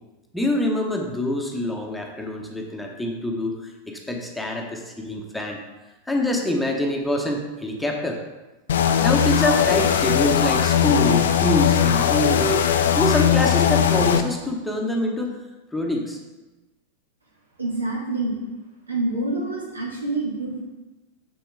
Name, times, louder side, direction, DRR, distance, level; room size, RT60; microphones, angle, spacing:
voice 1, 0.3-3.6 3.9-5.6 6.1-8.2 9.0-12.7 13.0-15.3 15.7-16.2, left 1 dB, 5° left, 1 dB, 1.0 m, -25 dB
sound 1, 8.7-14.2, left 9 dB, 60° left, 0.5 m, -19 dB
voice 2, 17.6-18.4 18.9-20.6, right 2 dB, 75° right, -2 dB, 1.8 m, -27 dB
7.0 x 6.8 x 3.6 m, 1.1 s
figure-of-eight pair, 90°, 0 cm